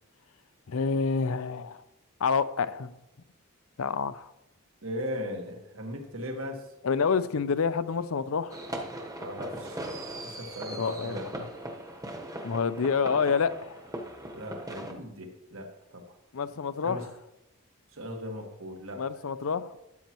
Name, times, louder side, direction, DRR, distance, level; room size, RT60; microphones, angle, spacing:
voice 1, 0.7-1.8 2.2-2.9 3.8-4.3 6.8-8.6 10.8-11.2 12.4-13.8 16.3-17.0 19.0-19.8, left 5 dB, 75° left, 14 dB, 0.5 m, -28 dB
voice 2, 4.8-6.7 9.2-9.9 10.2-11.3 14.3-16.0 16.8-17.1 17.9-19.0, equal, 70° right, 3 dB, 1.6 m, -38 dB
sound 1, 8.5-14.9, right 1 dB, 15° right, 1.1 m, -39 dB
13.0 x 8.5 x 3.0 m, 0.90 s
head